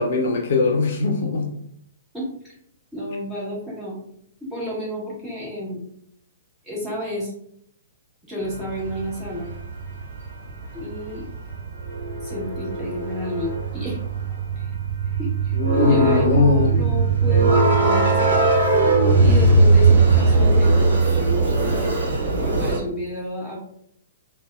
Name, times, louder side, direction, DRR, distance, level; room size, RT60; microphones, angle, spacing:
voice 1, 0.0-1.5 15.6-16.8, left 3 dB, 55° left, 1 dB, 0.5 m, -20 dB
voice 2, 2.1-2.6 2.9-3.9 4.4-5.8 6.6-7.3 8.3-9.5 10.7-11.3 12.2-14.0 14.5-14.7 15.0-18.4 19.2-21.9 22.4-23.6, equal, 10° right, -7 dB, 1.5 m, -30 dB
sound 1, 8.5-22.8, right 3 dB, 60° right, 1.0 m, -19 dB
3.9 x 2.2 x 2.5 m, 0.70 s
figure-of-eight pair, 115°, 0 cm